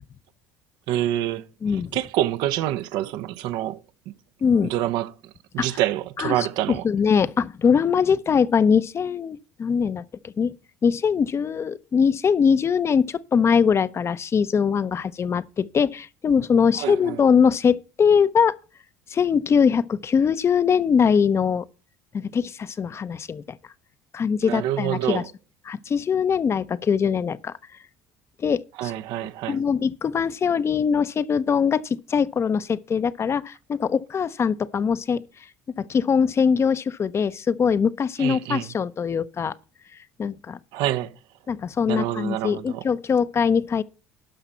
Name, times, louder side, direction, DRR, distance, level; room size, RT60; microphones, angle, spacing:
voice 1, 0.9-1.5 1.9-3.8 4.6-5.1 5.5-6.8 16.8-17.2 24.4-25.3 28.8-29.6 38.2-38.7 40.7-41.1 41.9-42.8, right 13 dB, 70° right, 0.8 m, -26 dB
voice 2, 1.6-1.9 4.4-4.7 5.6-5.7 6.2-10.5 10.8-18.6 19.1-21.6 22.1-23.4 24.1-25.2 25.7-27.5 28.4-28.9 29.5-35.2 35.8-39.5 40.2-40.6 41.5-43.8, left 6 dB, 35° left, 0.7 m, -22 dB
12.0 x 5.9 x 5.6 m
hypercardioid pair, 75°, 8 cm